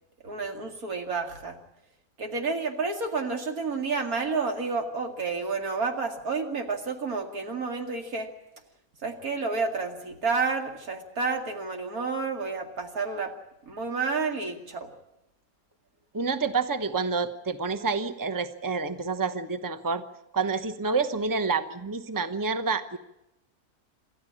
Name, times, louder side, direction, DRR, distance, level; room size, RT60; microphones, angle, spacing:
voice 1, 0.2-1.6 2.2-8.3 9.0-13.3 13.7-14.9, right 4 dB, 85° right, 4 dB, 2.8 m, -30 dB
voice 2, 16.1-20.0 20.3-23.0, right 4 dB, 15° right, 10 dB, 0.9 m, -28 dB
28.0 x 13.5 x 8.7 m, 0.89 s
omnidirectional pair, 1.5 m